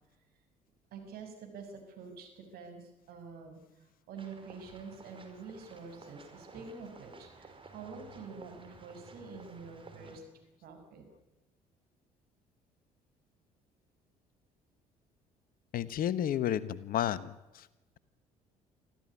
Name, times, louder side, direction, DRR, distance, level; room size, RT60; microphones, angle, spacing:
voice 1, 0.9-10.2 10.6-11.0, right 5 dB, 60° right, 4 dB, 6.1 m, -47 dB
sound 1, 4.2-10.2, right 3 dB, 30° right, 5.0 m, -54 dB
voice 2, 15.7-17.7, left 10 dB, 55° left, 17 dB, 1.2 m, -32 dB
24.0 x 15.0 x 9.9 m, 1.0 s
hypercardioid pair, 50°, 17 cm